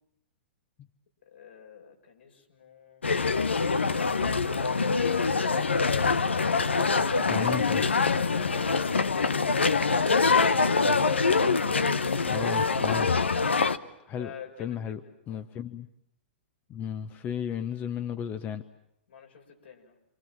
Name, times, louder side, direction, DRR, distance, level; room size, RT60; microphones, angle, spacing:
voice 1, 1.3-3.0 6.8-9.8 14.1-15.4 19.1-19.9, left 5 dB, 75° left, 2 dB, 6.6 m, -45 dB
sound 1, 3.0-13.8, left 4 dB, 90° left, 1.0 m, -24 dB
voice 2, 7.3-7.8 12.2-13.3 14.1-14.3 14.6-15.0 15.3-15.9 16.7-18.6, left 8 dB, 30° left, 10 dB, 1.1 m, -34 dB
28.0 x 27.0 x 7.5 m, 0.80 s
hypercardioid pair, 120°, 6 cm